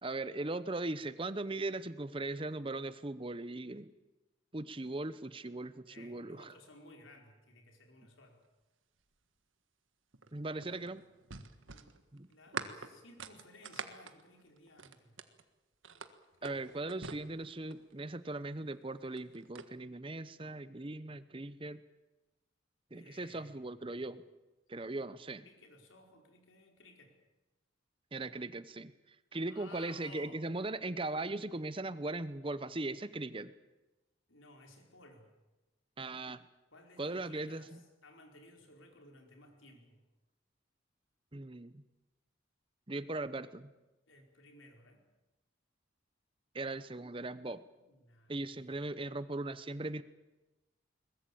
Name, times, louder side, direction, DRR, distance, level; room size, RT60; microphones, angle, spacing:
voice 1, 0.0-3.9 4.5-6.5 10.3-11.0 12.1-12.3 16.4-21.8 22.9-24.2 24.7-25.5 28.1-28.9 29.3-33.5 36.0-36.4 37.0-37.8 41.3-41.8 42.9-43.7 46.5-47.6 48.3-50.0, right 2 dB, 25° right, 14 dB, 0.7 m, -39 dB
voice 2, 5.9-8.4 11.7-11.9 12.3-15.2 16.4-16.6 22.9-24.0 25.4-27.1 29.4-30.4 34.3-35.3 36.7-40.0 44.1-45.0 47.8-48.7, left 2 dB, 90° left, 3 dB, 4.7 m, -58 dB
sound 1, 10.1-15.4 15.8-17.9 18.9-19.7, right 5 dB, 85° right, 1.6 m, -45 dB
22.0 x 20.5 x 8.6 m, 1.1 s
head